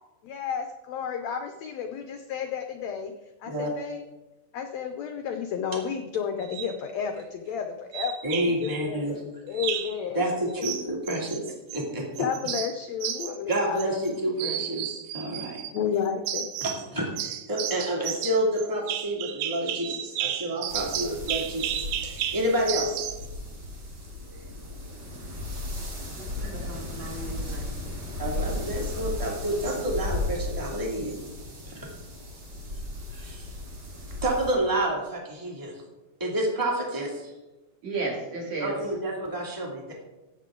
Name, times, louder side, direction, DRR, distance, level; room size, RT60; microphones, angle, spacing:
voice 1, 0.2-3.1 3.4-4.0 4.5-8.1 8.5-9.2 9.5-10.2 12.2-14.1 15.7-16.5, left 7 dB, 80° left, 6 dB, 1.5 m, -31 dB
sound 1, 6.4-6.8 7.9-8.7 9.6-10.0 10.6-11.8 12.2-14.1 14.4-15.7 16.3-16.9 17.2-23.3, right 10 dB, 85° right, 2.4 m, -33 dB
voice 2, 8.2-9.2 10.1-12.1 13.5-15.6 16.6-23.0 26.4-26.5 28.2-31.2 31.8-31.9 33.1-33.5 34.2-35.7 36.2-37.3 38.6-39.9, right 1 dB, 5° right, -2 dB, 1.9 m, -29 dB
sound 2, 20.7-34.5, left 2 dB, 35° right, 2.1 m, -35 dB
voice 3, 26.1-27.7 37.8-38.8, right 3 dB, 65° right, -4 dB, 4.5 m, -34 dB
14.0 x 9.0 x 3.8 m, 1.1 s
omnidirectional pair, 3.9 m